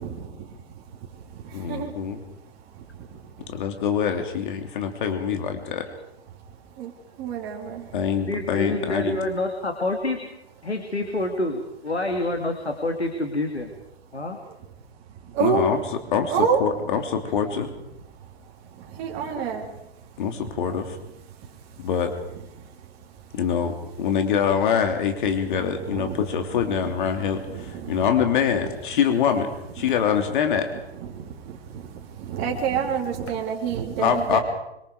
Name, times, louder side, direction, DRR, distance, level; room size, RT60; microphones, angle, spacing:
voice 1, 0.0-3.7 6.3-8.1 14.1-16.0 16.3-17.4 18.1-21.9 22.3-23.4 23.9-24.0 25.2-26.3 26.7-28.3 28.6-28.7 29.8-29.9 30.7-34.4, right 6 dB, 30° right, 0 dB, 3.8 m, -31 dB
voice 2, 1.5-2.2 3.5-5.9 7.9-9.2 15.4-15.8 16.1-16.3 16.6-17.7 20.2-21.0 21.8-22.1 23.3-29.5 29.7-30.7 34.0-34.4, left 7 dB, 50° left, 6 dB, 3.1 m, -24 dB
voice 3, 8.3-10.3 10.6-13.7 14.1-14.4 19.4-19.5, left 2 dB, 90° left, 4 dB, 2.8 m, -27 dB
26.0 x 24.5 x 5.0 m, 0.86 s
figure-of-eight pair, 120°, 32 cm